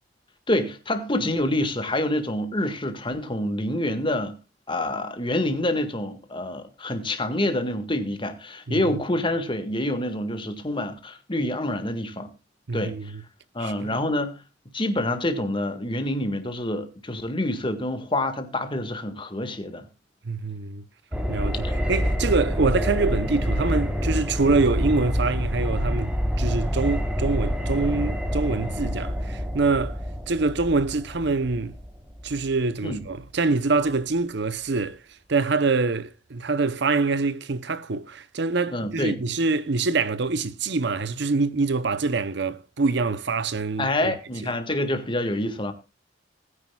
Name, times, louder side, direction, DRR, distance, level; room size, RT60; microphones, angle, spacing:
voice 1, 0.5-4.4 4.7-12.3 12.7-13.0 13.5-14.4 14.7-19.9 21.6-21.7 32.8-33.0 38.7-39.2 43.8-45.7, left 1 dB, 25° left, 1.8 m, -27 dB
voice 2, 12.7-13.2 13.6-14.0 20.2-20.9 21.3-30.0 30.3-31.8 32.2-35.0 35.3-44.1, right 3 dB, 60° right, 0.8 m, -25 dB
sound 1, 21.1-33.0 33.3-33.4, equal, 5° right, 1.4 m, -27 dB
19.5 x 9.8 x 2.3 m
head